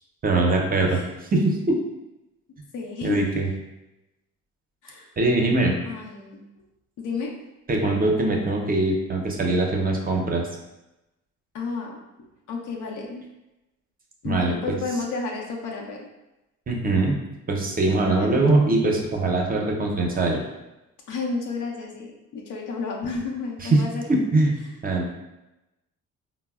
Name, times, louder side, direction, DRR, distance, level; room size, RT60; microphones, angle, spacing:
voice 1, 0.2-1.0 1.3-1.8 3.0-3.5 5.2-5.7 7.7-10.5 14.2-14.6 16.7-17.2 17.5-20.4 23.6-23.8 24.1-25.1, right 2 dB, 30° right, 1 dB, 0.6 m, -22 dB
voice 2, 2.7-3.3 4.8-5.1 5.9-6.4 7.0-7.3 11.5-12.0 12.5-13.2 14.2-16.1 18.0-18.6 21.1-24.1, left 4 dB, 85° left, -1 dB, 0.7 m, -32 dB
3.9 x 2.0 x 2.3 m, 0.98 s
cardioid pair, 90°, 30 cm